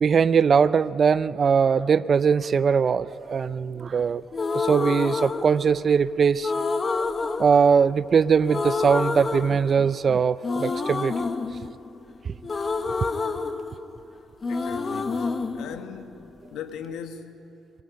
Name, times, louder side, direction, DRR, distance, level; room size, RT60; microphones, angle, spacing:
voice 1, 0.0-4.2 4.5-6.5 7.0-11.3 12.2-12.3, right 6 dB, 45° right, 0.5 m, -21 dB
sound 1, 4.3-6.0 6.4-8.2 8.5-10.1 10.4-14.1 14.4-16.5, left 4 dB, 35° left, 1.2 m, -28 dB
voice 2, 14.5-16.2 16.5-17.5, left 7 dB, 85° left, 1.5 m, -39 dB
26.5 x 22.5 x 5.3 m
cardioid pair, 90°, 0 cm